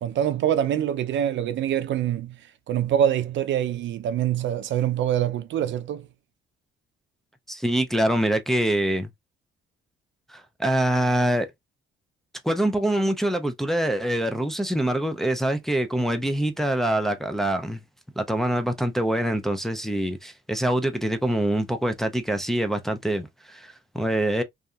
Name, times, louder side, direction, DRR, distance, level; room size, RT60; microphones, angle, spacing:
voice 1, 0.0-2.4 2.7-6.1, right 10 dB, 70° right, 0.5 m, -25 dB
voice 2, 7.5-9.1 10.3-11.5 12.4-17.8 18.2-24.4, right 1 dB, ahead, 0.5 m, -25 dB
2.6 x 2.4 x 2.3 m
cardioid pair, 90°, 20 cm